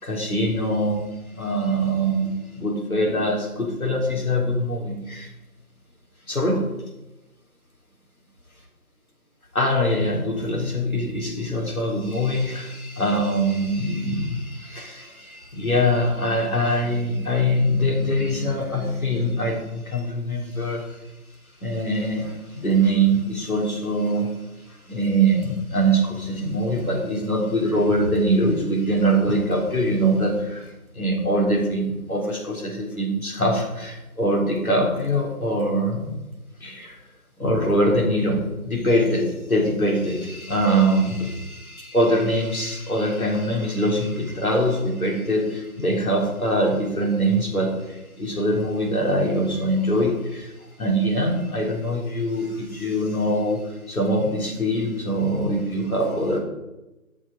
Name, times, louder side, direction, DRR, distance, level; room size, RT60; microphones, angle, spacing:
voice 1, 0.0-5.3 6.3-6.6 9.5-21.0 21.6-24.3 24.6-36.2 36.6-37.0 37.4-50.5 50.8-56.4, right 1 dB, 70° left, -1 dB, 3.7 m, -23 dB
12.5 x 6.4 x 5.1 m, 1.0 s
figure-of-eight pair, 170°, 44 cm